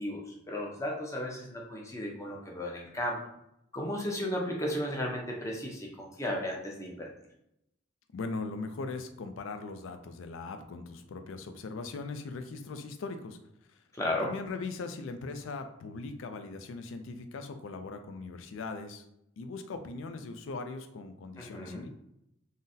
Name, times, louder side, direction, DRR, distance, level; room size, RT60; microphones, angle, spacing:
voice 1, 0.0-3.2 3.7-7.1 13.9-14.3 21.4-21.9, left 1 dB, 15° left, -1 dB, 0.5 m, -34 dB
voice 2, 8.1-13.4 14.2-19.0 19.4-21.9, left 3 dB, 85° left, 8 dB, 0.4 m, -40 dB
3.8 x 2.1 x 2.6 m, 0.81 s
head